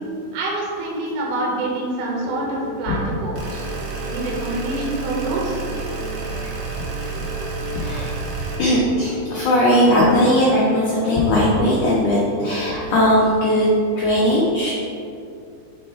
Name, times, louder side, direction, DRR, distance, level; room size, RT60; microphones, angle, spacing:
voice 1, 0.3-3.6 4.0-5.6, right 2 dB, 70° right, -4 dB, 2.4 m, -26 dB
sound 1, 2.2-13.3, left 2 dB, 65° left, 2.0 m, -35 dB
sound 2, 3.4-8.6, right 6 dB, 90° right, 1.3 m, -30 dB
voice 2, 7.7-13.7 14.0-14.7, left 1 dB, 80° left, -6 dB, 1.4 m, -18 dB
5.5 x 4.2 x 4.3 m, 2.5 s
omnidirectional pair, 4.0 m